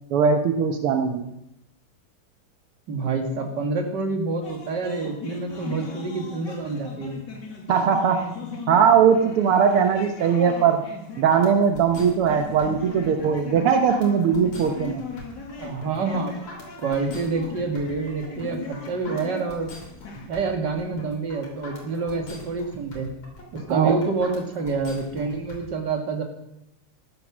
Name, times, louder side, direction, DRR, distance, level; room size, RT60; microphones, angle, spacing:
voice 1, 0.1-1.2 7.7-8.2 8.7-10.8 11.2-15.0 23.7-24.0, right 7 dB, 80° right, 5 dB, 2.0 m, -20 dB
voice 2, 2.9-7.2 15.6-16.4 16.8-19.7 20.3-23.1 23.7-26.2, right 4 dB, 50° right, 3 dB, 2.5 m, -27 dB
sound 1, 4.4-20.3, left 4 dB, 55° left, 2.6 m, -38 dB
sound 2, 11.3-25.6, left 1 dB, 80° left, 4.3 m, -43 dB
14.5 x 10.5 x 6.2 m, 0.81 s
omnidirectional pair, 2.4 m